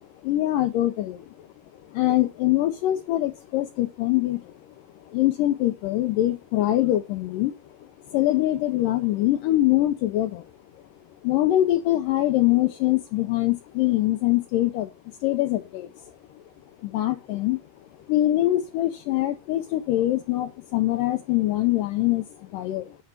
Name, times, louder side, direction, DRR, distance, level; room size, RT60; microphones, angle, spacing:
voice 1, 0.0-1.5 1.7-10.8 11.2-16.4 16.8-23.0, left 15 dB, 80° left, 2.0 m, -24 dB
10.5 x 4.6 x 5.8 m
omnidirectional pair, 4.3 m